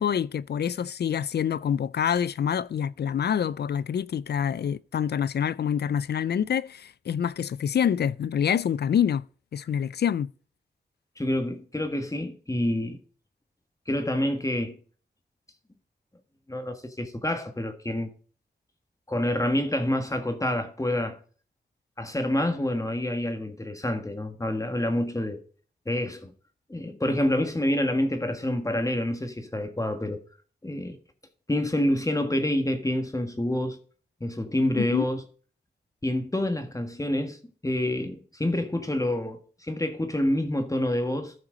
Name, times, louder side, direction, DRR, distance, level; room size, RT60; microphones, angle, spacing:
voice 1, 0.0-9.2 9.5-10.3 34.8-35.1, left 8 dB, 75° left, 0.4 m, -26 dB
voice 2, 11.2-13.0 13.9-14.8 16.5-18.1 19.1-21.2 22.0-25.4 25.8-26.3 26.7-30.2 30.6-31.0 31.5-33.8 34.2-35.2 36.0-37.4 37.6-41.3, left 1 dB, 20° left, 1.5 m, -27 dB
13.5 x 5.9 x 3.8 m
wide cardioid pair, 70°, 17 cm